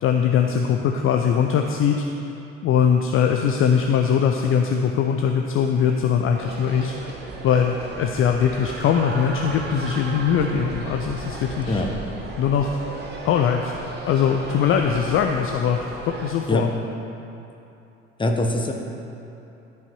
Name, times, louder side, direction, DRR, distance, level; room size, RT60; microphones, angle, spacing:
voice 1, 0.0-2.0 2.6-7.2 7.4-11.8 12.4-12.8 13.2-13.7 14.0-16.7, left 7 dB, 35° left, 3 dB, 0.5 m, -21 dB
sound 1, 6.4-16.3, right 3 dB, 25° right, 1.3 m, -35 dB
voice 2, 18.2-18.7, left 1 dB, 15° left, 2 dB, 0.9 m, -22 dB
11.5 x 5.5 x 4.6 m, 2.9 s
figure-of-eight pair, 65°, 38 cm